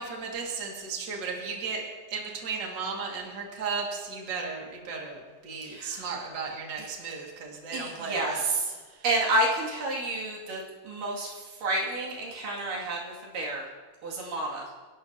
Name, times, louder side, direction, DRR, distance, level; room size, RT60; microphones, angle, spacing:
voice 1, 0.0-8.5 8.9-9.0, right 4 dB, 40° right, -1 dB, 2.5 m, -35 dB
voice 2, 5.6-6.1 6.8-6.9 7.7-8.8 9.0-13.6 14.0-14.7, right 2 dB, 90° right, -3 dB, 4.1 m, -30 dB
29.5 x 11.5 x 2.9 m, 1.4 s
omnidirectional pair, 3.7 m